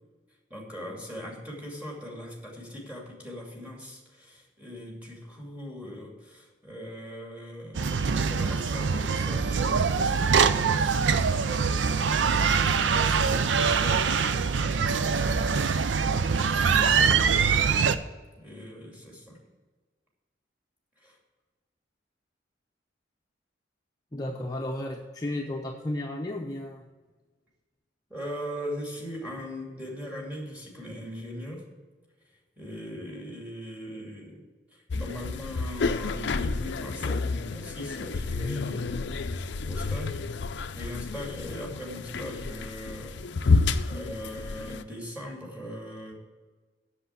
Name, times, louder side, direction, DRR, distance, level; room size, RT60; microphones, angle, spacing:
voice 1, 0.5-7.9 8.1-15.7 16.1-17.5 18.4-19.4 21.0-21.2 28.1-31.6 32.6-34.4 34.7-39.1 39.4-40.2 40.5-46.1, equal, 10° right, -2 dB, 2.5 m, -40 dB
sound 1, 7.7-18.0, right 5 dB, 75° right, 0.5 m, -24 dB
voice 2, 24.1-26.9, left 1 dB, 20° left, 0 dB, 0.7 m, -33 dB
sound 2, 34.9-44.8, left 3 dB, 65° left, 0.5 m, -30 dB
7.9 x 6.9 x 7.1 m, 1.3 s
head